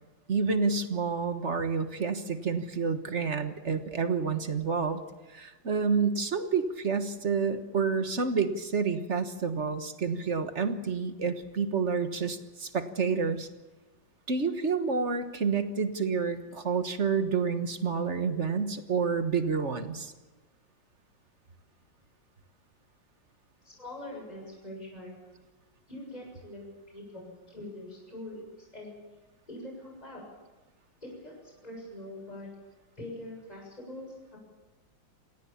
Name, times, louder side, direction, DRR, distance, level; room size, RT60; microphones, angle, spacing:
voice 1, 0.3-5.0 5.3-13.5 14.3-20.1, right 5 dB, 40° right, 8 dB, 1.5 m, -29 dB
voice 2, 23.6-25.2 25.9-28.9 29.5-30.2 31.0-32.5 33.0-34.4, left 1 dB, 20° left, -1 dB, 7.2 m, -43 dB
27.5 x 18.0 x 7.2 m, 1.2 s
omnidirectional pair, 2.1 m